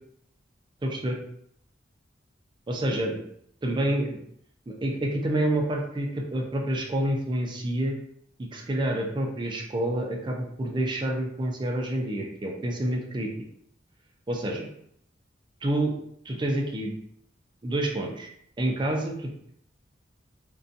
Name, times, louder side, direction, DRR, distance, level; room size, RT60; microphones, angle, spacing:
voice 1, 0.8-1.2 2.7-3.2 3.6-4.2 4.7-8.0 8.4-13.3 14.3-14.7 15.6-15.9 16.2-16.9 17.6-18.3 18.6-19.5, right 1 dB, 25° right, 0 dB, 0.4 m, -28 dB
2.5 x 2.2 x 2.5 m, 0.68 s
head